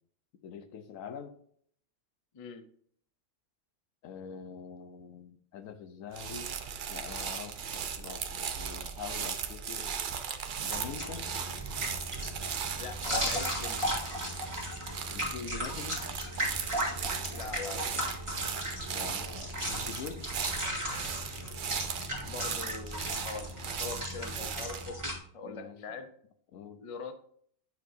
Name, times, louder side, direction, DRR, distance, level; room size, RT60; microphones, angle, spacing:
voice 1, 0.4-1.4 4.0-6.5 6.9-9.9 10.6-11.3 15.1-16.0 18.9-20.2 25.4-25.8 26.5-26.8, left 6 dB, 80° left, 9 dB, 1.1 m, -44 dB
sound 1, 6.1-24.9, right 7 dB, 50° right, 0.6 m, -38 dB
sound 2, 10.7-25.2, equal, 25° right, 2.1 m, -36 dB
voice 2, 12.8-13.9 17.3-17.9 22.2-23.5 23.8-26.1 26.8-27.1, left 4 dB, 40° left, 9 dB, 0.4 m, -42 dB
9.1 x 5.8 x 2.6 m, 0.62 s
omnidirectional pair, 1.4 m